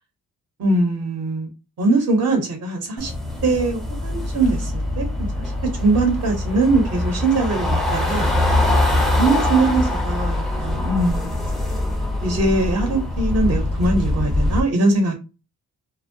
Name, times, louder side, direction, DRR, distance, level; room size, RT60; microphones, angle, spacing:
voice 1, 0.6-1.5 1.8-3.1 3.4-5.5 5.8-8.3 9.2-11.4 12.2-15.1, right 2 dB, 50° right, 0.7 m, -21 dB
sound 1, 3.0-14.6, left 1 dB, ahead, 0.4 m, -23 dB
2.5 x 2.0 x 2.6 m
wide cardioid pair, 150°, 32 cm